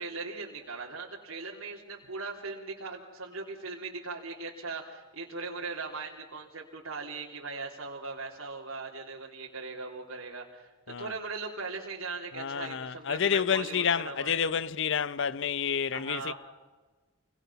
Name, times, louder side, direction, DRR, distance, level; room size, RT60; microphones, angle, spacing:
voice 1, 0.0-14.5 15.9-16.3, right 4 dB, 90° right, 3.2 m, -39 dB
voice 2, 12.4-16.3, left 7 dB, 60° left, 0.6 m, -29 dB
28.0 x 22.5 x 5.8 m
head